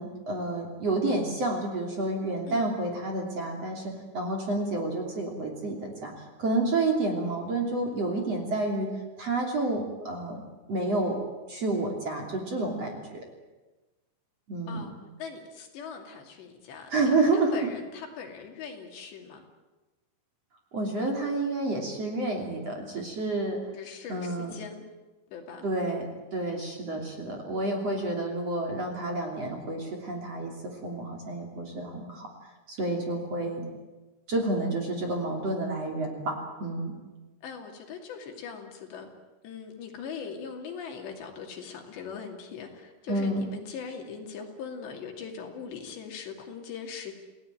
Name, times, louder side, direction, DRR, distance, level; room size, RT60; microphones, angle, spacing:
voice 1, 0.0-8.9 9.2-10.4 10.7-11.2 11.5-13.0 14.5-14.9 16.9-17.5 20.7-23.6 24.1-24.6 25.6-32.3 32.7-33.7 34.3-36.9 43.1-43.4, right 2 dB, 35° right, 1 dB, 3.5 m, -29 dB
voice 2, 2.5-2.8 14.7-14.9 15.2-19.4 23.7-24.8 25.3-25.6 37.4-39.1 39.4-47.1, left 6 dB, 65° left, 3 dB, 4.7 m, -41 dB
28.5 x 18.0 x 9.2 m, 1.2 s
omnidirectional pair, 5.4 m